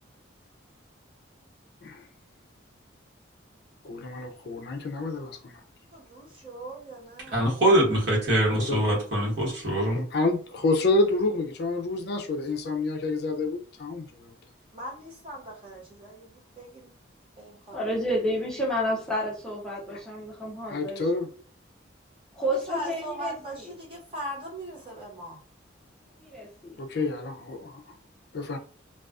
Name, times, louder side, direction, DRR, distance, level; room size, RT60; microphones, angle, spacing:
voice 1, 3.8-5.6 8.6-8.8 9.9-14.3 19.9-20.0 20.7-21.3 26.8-27.8 28.3-28.6, left 3 dB, 55° left, 0.4 m, -28 dB
voice 2, 5.9-7.5 14.7-16.9 17.4-17.8 22.7-25.4, right 1 dB, 25° right, 1.0 m, -39 dB
voice 3, 7.3-10.0, right 1 dB, 60° right, 1.2 m, -23 dB
voice 4, 17.7-21.0 22.4-23.7 26.2-26.8, equal, 5° left, 0.5 m, -30 dB
2.3 x 2.3 x 2.3 m
head